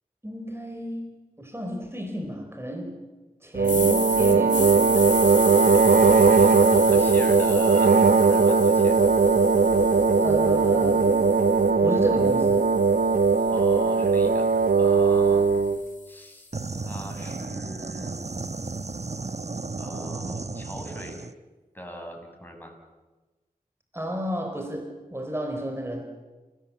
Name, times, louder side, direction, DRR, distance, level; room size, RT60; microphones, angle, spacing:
voice 1, 0.2-1.1 1.4-2.9 3.4-5.3 10.2-11.1 11.8-12.7 23.9-26.0, equal, 15° right, 4 dB, 4.5 m, -32 dB
sound 1, 3.6-11.7 12.2-16.4, left 3 dB, 60° left, 3.0 m, -35 dB
sound 2, 3.6-15.8, right 4 dB, 80° right, 1.1 m, -19 dB
voice 2, 5.9-9.0 13.5-14.5 14.8-15.5 16.1-16.5 16.8-18.4 19.8-21.2 21.7-22.7, equal, 15° left, 2 dB, 7.6 m, -40 dB
sound 3, 16.5-21.3, right 3 dB, 50° right, 1.0 m, -34 dB
29.5 x 18.0 x 8.7 m, 1.2 s
wide cardioid pair, 45°, 15 cm